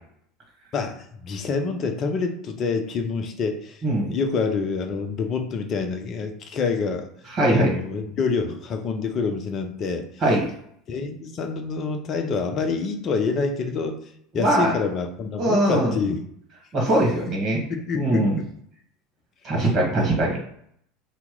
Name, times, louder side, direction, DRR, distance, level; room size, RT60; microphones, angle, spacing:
voice 1, 0.7-3.8 4.1-7.1 7.5-10.1 10.9-14.0 14.3-16.2 17.5-18.4, left 4 dB, 40° left, 5 dB, 0.6 m, -27 dB
voice 2, 3.8-4.1 7.3-7.7 10.2-10.4 14.4-14.7 15.4-15.9 16.7-17.6 17.9-18.4 19.4-20.4, right 1 dB, 35° right, -2 dB, 1.3 m, -21 dB
2.9 x 2.1 x 3.7 m, 0.68 s
figure-of-eight pair, 75°, 0 cm